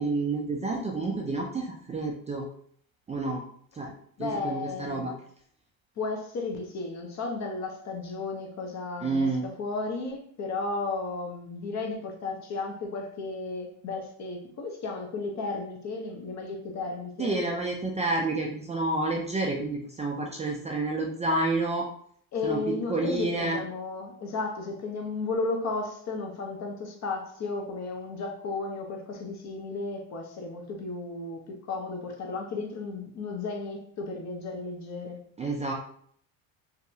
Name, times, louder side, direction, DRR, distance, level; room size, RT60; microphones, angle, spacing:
voice 1, 0.0-2.4 3.1-3.4 3.7-3.9 4.2-5.1 9.0-9.5 17.2-21.9 22.4-22.6 22.9-23.6 35.4-35.7, right 2 dB, 20° right, 0 dB, 0.4 m, -29 dB
voice 2, 4.2-5.1 6.0-17.4 22.3-35.2, left 3 dB, 45° left, 3 dB, 0.7 m, -34 dB
2.8 x 2.2 x 2.7 m, 0.62 s
hypercardioid pair, 80°, 40 cm